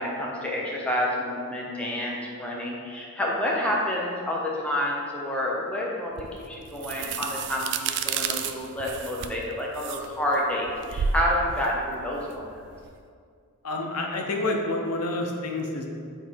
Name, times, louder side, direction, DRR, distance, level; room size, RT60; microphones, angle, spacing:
voice 1, 0.0-12.5, left 1 dB, 5° left, -4 dB, 0.7 m, -29 dB
sound 1, 6.2-12.9, right 6 dB, 55° right, 0.3 m, -32 dB
voice 2, 13.6-15.9, left 2 dB, 90° left, 1 dB, 0.8 m, -28 dB
8.0 x 3.3 x 4.5 m, 2.2 s
head